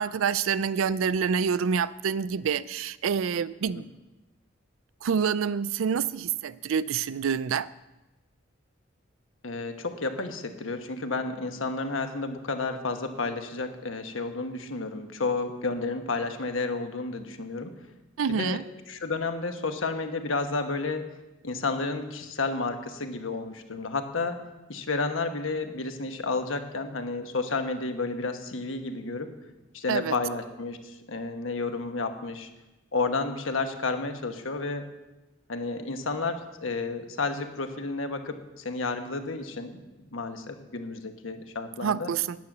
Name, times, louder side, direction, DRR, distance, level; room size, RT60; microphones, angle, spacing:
voice 1, 0.0-3.8 5.0-7.7 18.2-18.6 29.9-30.1 41.8-42.4, right 6 dB, 85° right, 18 dB, 0.4 m, -27 dB
voice 2, 9.4-17.7 18.3-18.6 18.9-21.0 21.4-24.4 24.7-29.3 29.7-32.5 32.9-34.8 35.5-42.1, left 3 dB, 80° left, 6 dB, 1.2 m, -31 dB
9.5 x 9.2 x 6.1 m, 1.0 s
head